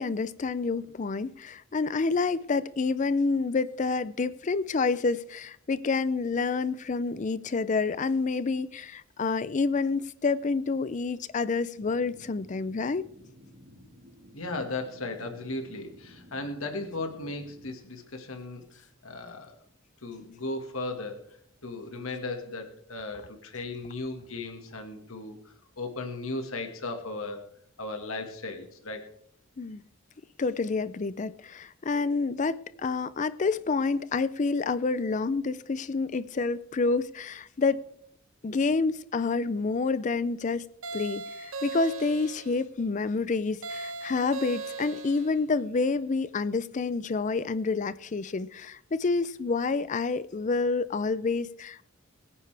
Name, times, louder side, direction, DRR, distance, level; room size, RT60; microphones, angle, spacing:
voice 1, 0.0-13.0 29.6-29.8 30.4-37.8 38.4-40.6 40.9-51.9, left 4 dB, 35° left, 0.4 m, -28 dB
sound 1, 11.7-17.7, equal, 35° right, 1.8 m, -53 dB
voice 2, 14.3-19.6 20.0-21.2 21.6-25.4 25.8-27.4 27.8-29.1, left 2 dB, 85° left, 1.8 m, -36 dB
sound 2, 40.8-42.6 43.6-45.4, right 3 dB, 80° right, 1.1 m, -38 dB
22.0 x 9.7 x 3.4 m
head